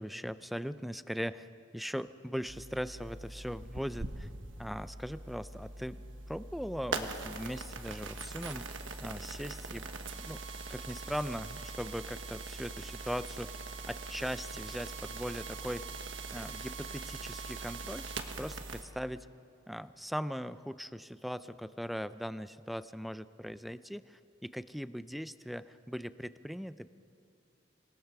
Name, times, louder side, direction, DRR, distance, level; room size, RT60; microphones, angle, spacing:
voice 1, 0.0-4.3 4.6-8.6 9.0-9.9 10.1-10.4 10.7-13.5 13.9-15.9 16.3-18.1 18.4-19.3 19.7-26.9, equal, ahead, 14 dB, 0.4 m, -39 dB
sound 1, 2.5-18.8, right 3 dB, 80° right, 1.3 m, -42 dB
27.0 x 17.5 x 5.9 m, 2.5 s
head